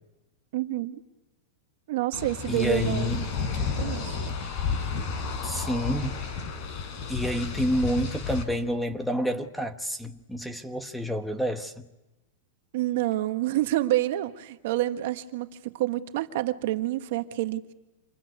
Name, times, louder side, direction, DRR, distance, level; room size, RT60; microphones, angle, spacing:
voice 1, 0.5-1.0 1.9-3.3 3.8-4.2 12.7-17.6, right 15 dB, 60° right, 1.5 m, -28 dB
sound 1, 2.1-8.4, left 5 dB, 40° left, 4.7 m, -31 dB
voice 2, 2.5-3.2 5.4-6.2 7.1-11.9, equal, ahead, 1.2 m, -29 dB
27.0 x 20.5 x 9.5 m
supercardioid pair, 150°, 0 cm